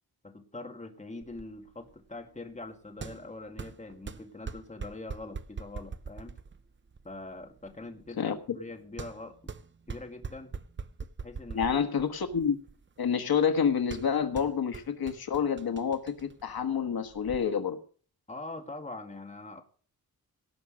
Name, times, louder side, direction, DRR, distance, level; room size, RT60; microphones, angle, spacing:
voice 1, 0.2-6.4 7.0-9.5 9.9-10.5 11.2-11.7 18.3-19.6, left 2 dB, 20° left, 4 dB, 2.1 m, -43 dB
sound 1, 1.2-17.4, right 5 dB, 30° right, 0.7 m, -44 dB
voice 2, 8.2-8.6 11.5-12.5 13.0-17.8, left 7 dB, 75° left, 7 dB, 1.4 m, -28 dB
18.0 x 6.2 x 6.4 m, 0.43 s
wide cardioid pair, 110°, 37 cm